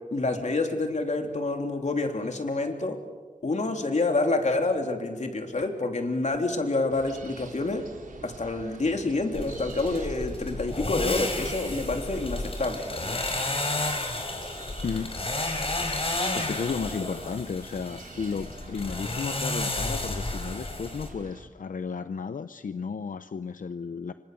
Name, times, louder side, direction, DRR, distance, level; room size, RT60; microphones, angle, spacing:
voice 1, 0.1-3.0 3.4-7.8 8.2-13.2, left 2 dB, 60° left, 3 dB, 3.6 m, -28 dB
sound 1, 6.9-21.4, right 3 dB, 85° right, 3.9 m, -47 dB
sound 2, 9.3-21.1, left 2 dB, 45° left, 5.1 m, -32 dB
voice 2, 14.8-15.2 16.3-24.1, left 5 dB, 90° left, 11 dB, 0.7 m, -33 dB
29.0 x 26.0 x 6.9 m, 1.3 s
wide cardioid pair, 85°, 14 cm